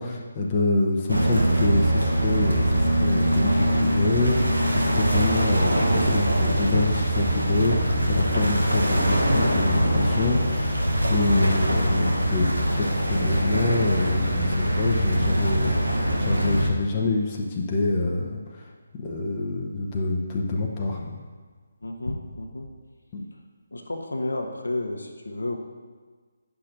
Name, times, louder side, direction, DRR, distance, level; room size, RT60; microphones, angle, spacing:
voice 1, 0.0-12.5 12.8-18.4 19.0-21.2 23.1-23.2, left 2 dB, 25° left, -2 dB, 0.8 m, -26 dB
sound 1, 1.1-16.7, right 1 dB, 85° right, 1.0 m, -23 dB
voice 2, 21.8-22.7 23.7-25.6, left 2 dB, 75° left, 2 dB, 0.9 m, -31 dB
9.6 x 5.9 x 2.6 m, 1.5 s
figure-of-eight pair, 150°, 0 cm